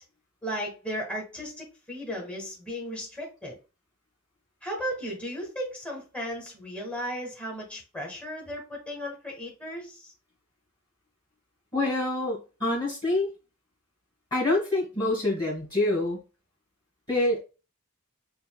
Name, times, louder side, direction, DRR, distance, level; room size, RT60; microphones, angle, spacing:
voice 1, 0.4-3.6 4.6-10.1, equal, 5° left, -2 dB, 1.3 m, -35 dB
voice 2, 11.7-13.3 14.3-16.2 17.1-17.4, left 2 dB, 20° left, -5 dB, 1.7 m, -26 dB
6.8 x 2.6 x 2.3 m, 0.31 s
head